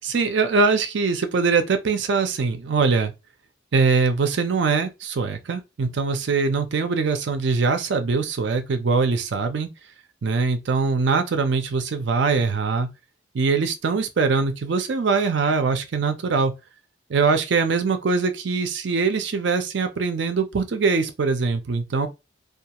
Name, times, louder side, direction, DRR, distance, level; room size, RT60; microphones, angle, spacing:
voice 1, 0.0-3.1 3.7-9.7 10.2-12.9 13.3-16.5 17.1-22.1, right 4 dB, 65° right, 0.5 m, -22 dB
2.4 x 2.3 x 2.8 m
head